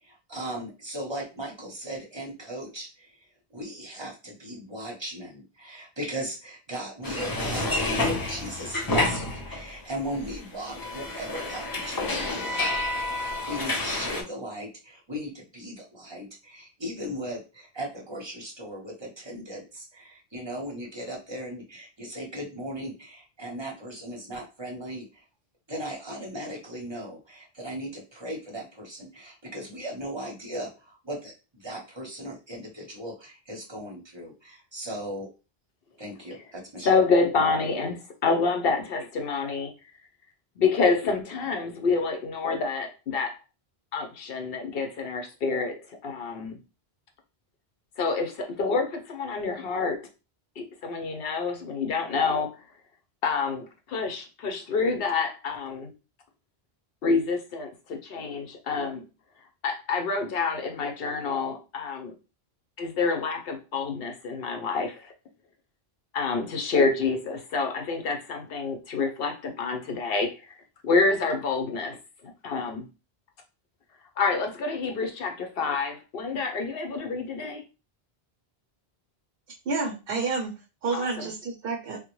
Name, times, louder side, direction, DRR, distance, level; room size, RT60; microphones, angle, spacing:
voice 1, 0.0-3.1 3.5-25.2 25.7-35.3 36.0-36.9, right 1 dB, 30° right, -1 dB, 0.8 m, -37 dB
sound 1, 7.0-9.9 10.1-14.2, left 2 dB, 35° left, 0.4 m, -29 dB
voice 2, 36.8-39.7 40.6-43.4 43.9-46.6 48.0-50.0 50.6-52.5 53.2-55.9 57.0-59.0 59.6-62.1 62.8-65.1 66.1-70.3 70.8-72.0 72.4-72.9 74.2-77.6 80.9-81.3, left 4 dB, 70° left, 4 dB, 0.9 m, -27 dB
voice 3, 79.7-80.5 80.8-82.0, right 4 dB, 70° right, 0 dB, 0.8 m, -29 dB
3.6 x 2.0 x 3.0 m, 0.31 s
omnidirectional pair, 1.0 m